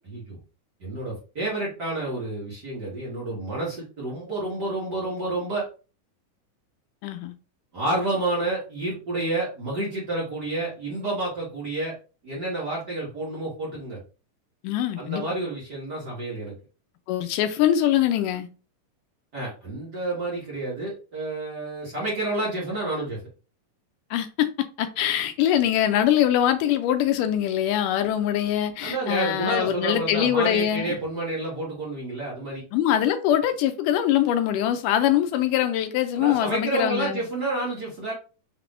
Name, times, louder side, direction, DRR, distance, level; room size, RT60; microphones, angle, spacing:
voice 1, 0.0-0.4 0.8-5.7 7.7-11.9 12.2-14.0 15.0-16.5 19.3-23.2 28.8-32.6 36.1-38.1, right 2 dB, 40° right, 1.6 m, -29 dB
voice 2, 7.0-7.3 14.6-15.2 17.1-18.5 24.1-24.5 24.8-31.0 32.7-37.2, left 11 dB, 80° left, 2.1 m, -23 dB
5.8 x 3.4 x 2.5 m
omnidirectional pair, 3.8 m